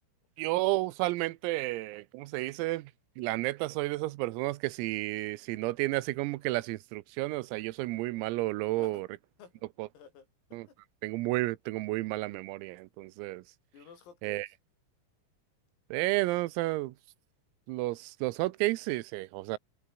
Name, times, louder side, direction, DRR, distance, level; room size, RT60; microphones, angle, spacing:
voice 1, 0.4-2.9 3.2-9.1 9.8-9.9 10.5-10.7 11.0-13.4 14.2-14.5 15.9-17.0 17.7-19.6, right 20 dB, 90° right, 3.7 m, -31 dB
voice 2, 9.9-10.8 13.7-14.5, left 6 dB, 80° left, 8.6 m, -53 dB
omnidirectional pair, 6.0 m